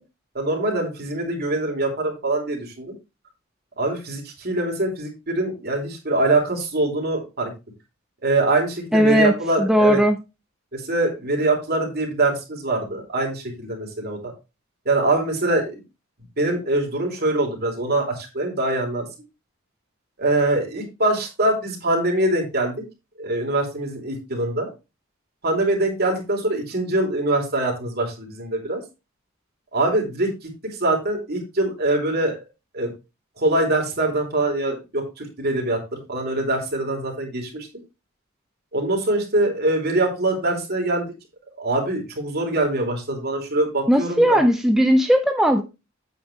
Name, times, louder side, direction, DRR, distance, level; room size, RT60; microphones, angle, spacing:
voice 1, 0.3-2.9 3.8-7.5 8.2-10.0 10.7-14.3 14.8-15.8 16.4-19.1 20.2-22.7 23.2-24.7 25.4-28.8 29.7-32.4 32.7-32.9 33.4-35.8 36.1-37.7 38.7-41.1 41.6-44.4, right 2 dB, 50° right, 2 dB, 3.0 m, -23 dB
voice 2, 8.9-10.2 43.9-45.6, equal, ahead, 5 dB, 0.5 m, -17 dB
8.4 x 8.2 x 3.2 m, 0.26 s
head